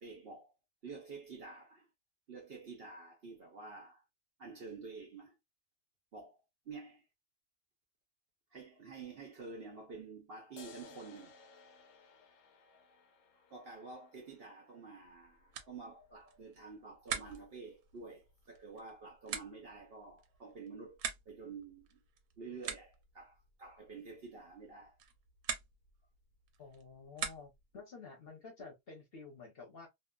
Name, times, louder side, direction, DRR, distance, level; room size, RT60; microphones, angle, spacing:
voice 1, 0.0-0.5 0.8-1.9 2.3-4.0 4.4-5.3 6.1-6.4 6.7-7.0 8.5-11.4 12.7-12.8 13.5-21.0 21.3-22.0 22.4-24.9 28.6-28.7, right 4 dB, 55° right, 0.7 m, -49 dB
sound 1, 10.6-17.5, left 5 dB, 75° left, 1.1 m, -60 dB
sound 2, 15.0-27.8, right 7 dB, 85° right, 1.1 m, -46 dB
voice 2, 26.6-29.9, left 4 dB, 50° left, 0.9 m, -51 dB
2.8 x 2.4 x 2.2 m
omnidirectional pair, 1.6 m